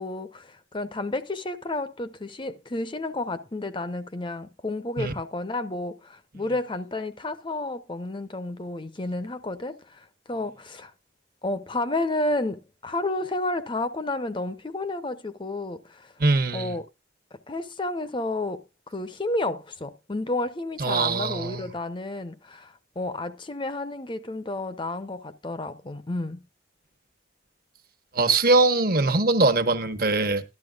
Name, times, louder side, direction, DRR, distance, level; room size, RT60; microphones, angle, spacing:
voice 1, 0.0-10.9 11.4-16.1 16.5-16.8 17.3-26.4, left 2 dB, 25° left, 0.6 m, -31 dB
voice 2, 16.2-16.7 20.8-21.7 28.1-30.4, right 3 dB, 50° right, 1.2 m, -22 dB
13.5 x 12.0 x 2.3 m
head